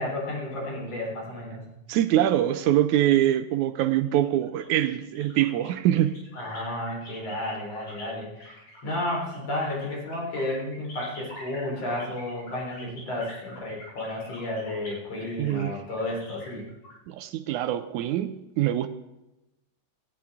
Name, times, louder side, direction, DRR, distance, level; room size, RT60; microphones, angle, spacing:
voice 1, 0.0-1.6 6.3-16.6, left 1 dB, 55° left, 5.0 m, -32 dB
voice 2, 1.9-6.2 15.4-15.8 17.1-18.9, right 12 dB, 80° right, 1.9 m, -24 dB
sound 1, 4.1-8.0 8.4-16.9, left 1 dB, 80° left, 7.4 m, -46 dB
18.5 x 13.5 x 3.6 m
omnidirectional pair, 3.6 m